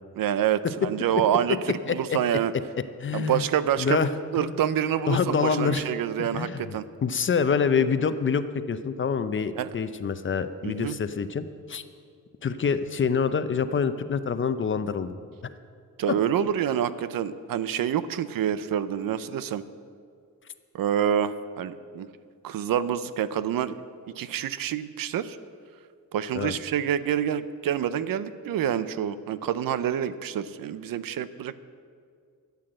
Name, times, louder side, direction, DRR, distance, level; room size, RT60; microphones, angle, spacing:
voice 1, 0.2-2.5 3.1-6.8 9.6-9.7 10.6-11.0 16.0-19.6 20.7-22.1 22.4-25.4 26.1-31.5, right 9 dB, 90° right, 14 dB, 0.6 m, -27 dB
voice 2, 1.9-2.2 3.0-3.4 3.8-4.1 4.4-4.6 5.1-5.9 6.2-11.8 12.4-15.2 26.3-26.5, left 6 dB, 35° left, 11 dB, 0.6 m, -26 dB
12.5 x 8.3 x 7.7 m, 2.2 s
wide cardioid pair, 130°, 33 cm